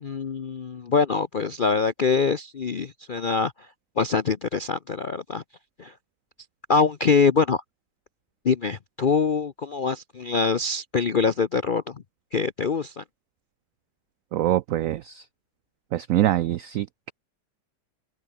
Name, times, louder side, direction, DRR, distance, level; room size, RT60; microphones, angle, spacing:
voice 1, 0.0-3.5 4.0-5.4 5.8-5.9 6.7-7.6 8.4-11.9 12.3-13.0, left 5 dB, 60° left, 0.5 m, -24 dB
voice 2, 14.3-15.2 15.9-17.1, right 13 dB, 80° right, 0.7 m, -24 dB
omnidirectional pair, 1.9 m